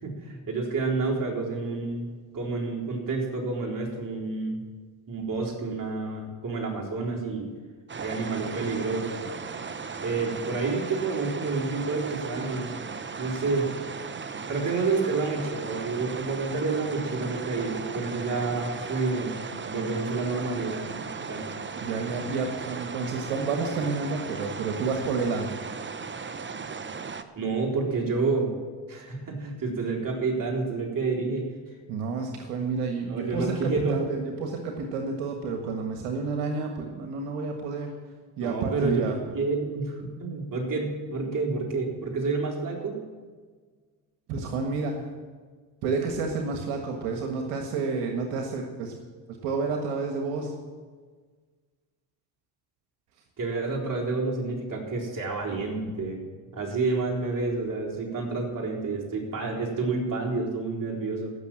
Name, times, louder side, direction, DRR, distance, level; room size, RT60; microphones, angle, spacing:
voice 1, 0.0-2.1 2.3-4.6 5.1-7.5 8.0-9.2 10.0-12.8 13.2-13.7 14.5-21.5 27.4-28.5 28.9-31.4 33.1-34.0 38.4-43.0 53.4-56.3 56.5-61.3, right 3 dB, 40° right, -1 dB, 4.1 m, -29 dB
sound 1, 7.9-27.2, right 5 dB, 25° right, 0.9 m, -37 dB
voice 2, 21.8-25.6 31.9-37.9 38.4-39.2 44.3-45.0 45.8-50.5, right 4 dB, 80° right, 3 dB, 1.6 m, -30 dB
15.5 x 6.6 x 8.9 m, 1.5 s
supercardioid pair, 70°, 49 cm